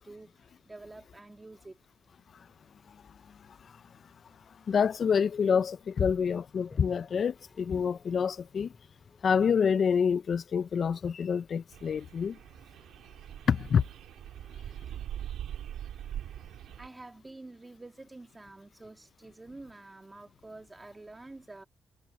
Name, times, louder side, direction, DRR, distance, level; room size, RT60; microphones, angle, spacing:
voice 1, 0.0-1.8 14.9-15.0 16.8-21.6, right 2 dB, 20° right, 2.5 m, -48 dB
voice 2, 4.7-8.7 9.2-12.4 13.5-13.8, left 6 dB, 55° left, 0.5 m, -27 dB
Toilet flush, 6.5-15.6, left 4 dB, 35° left, 4.8 m, -60 dB
sound 1, 11.7-16.9, right 10 dB, 90° right, 1.8 m, -42 dB
cardioid pair, 80°, 0 cm